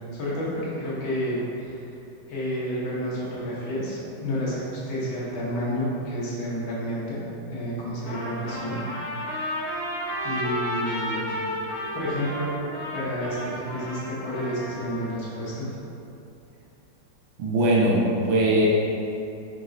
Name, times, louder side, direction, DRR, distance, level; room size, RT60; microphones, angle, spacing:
voice 1, 0.1-1.8 2.3-7.2 7.5-8.8 9.1-9.4 10.2-11.3 11.9-12.5 12.9-15.7, equal, 90° left, -7 dB, 1.8 m, -30 dB
Trumpet, 8.1-15.1, equal, 70° left, 1.5 m, -32 dB
voice 2, 17.4-18.7, right 1 dB, 90° right, -5 dB, 1.5 m, -20 dB
4.6 x 2.9 x 2.6 m, 2.8 s
omnidirectional pair, 2.1 m